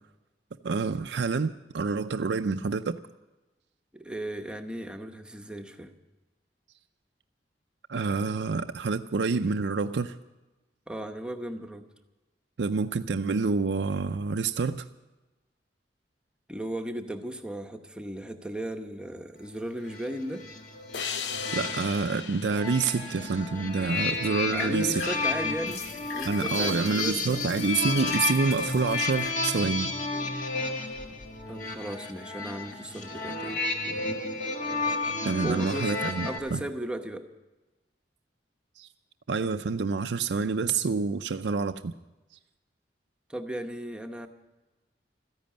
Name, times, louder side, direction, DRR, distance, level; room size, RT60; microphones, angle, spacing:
voice 1, 0.6-3.0 7.9-10.2 12.6-14.9 21.5-25.1 26.2-29.9 30.8-30.9 35.2-36.6 38.8-38.9 39.3-41.9, right 4 dB, 80° right, 7 dB, 0.5 m, -28 dB
voice 2, 3.9-5.9 10.9-11.8 16.5-20.5 24.5-25.8 26.1-27.4 31.5-33.6 33.9-34.0 35.4-37.3 43.3-44.3, right 1 dB, 5° right, 5 dB, 1.0 m, -36 dB
sound 1, 19.8-36.4, left 3 dB, 45° left, 1.7 m, -32 dB
sound 2, 20.9-24.2, left 7 dB, 90° left, 0.8 m, -38 dB
sound 3, 23.5-29.5, left 3 dB, 70° left, 2.1 m, -41 dB
14.0 x 10.5 x 8.8 m, 1.1 s
head